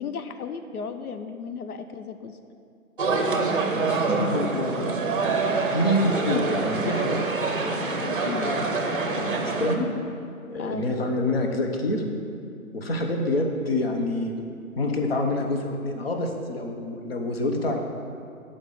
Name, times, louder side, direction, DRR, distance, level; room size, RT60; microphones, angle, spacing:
voice 1, 0.0-2.4 8.2-8.5 10.5-10.9, left 6 dB, 90° left, 8 dB, 0.7 m, -34 dB
sound 1, 3.0-9.8, right 3 dB, 40° right, 0.7 m, -26 dB
voice 2, 3.7-5.4 5.7-7.2 7.8-8.1 8.4-9.9 10.5-12.0 12.7-14.3 14.8-17.8, left 1 dB, 45° left, 2 dB, 1.0 m, -27 dB
6.7 x 5.3 x 6.8 m, 2.4 s
hypercardioid pair, 165°, 43 cm